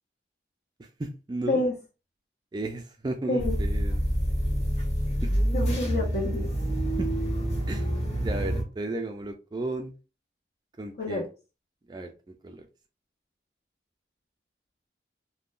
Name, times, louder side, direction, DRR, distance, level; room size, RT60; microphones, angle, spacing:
voice 1, 0.8-1.7 2.5-4.0 5.2-5.3 7.0-7.1 7.7-7.9 8.2-9.9 10.8-11.2 11.9-12.7, right 2 dB, 25° right, 4 dB, 0.3 m, -34 dB
sound 1, 3.4-8.6, right 1 dB, 35° left, 1.4 m, -27 dB
voice 2, 5.5-6.5 11.0-11.3, left 2 dB, 55° left, -1 dB, 0.7 m, -27 dB
3.5 x 2.1 x 2.5 m, 0.32 s
head